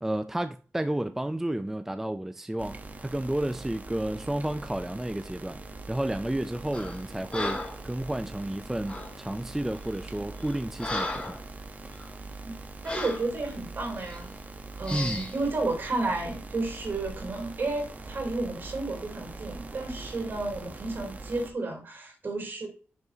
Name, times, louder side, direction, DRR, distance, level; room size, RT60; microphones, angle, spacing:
voice 1, 0.0-5.6 5.9-11.4 14.9-15.2, right 1 dB, 10° right, 0.4 m, -31 dB
sound 1, 2.6-21.5, right 3 dB, 35° right, 1.0 m, -42 dB
Breathing, 6.7-7.0 7.3-7.8 8.9-9.1 9.8-10.0 10.4-11.4 11.9-12.1 12.8-13.3 14.0-14.2 14.8-15.3, left 2 dB, 25° left, 2.8 m, -35 dB
voice 2, 12.8-14.3 14.8-22.7, right 2 dB, 50° right, 3.2 m, -32 dB
10.5 x 6.4 x 2.8 m
wide cardioid pair, 135°, 5 cm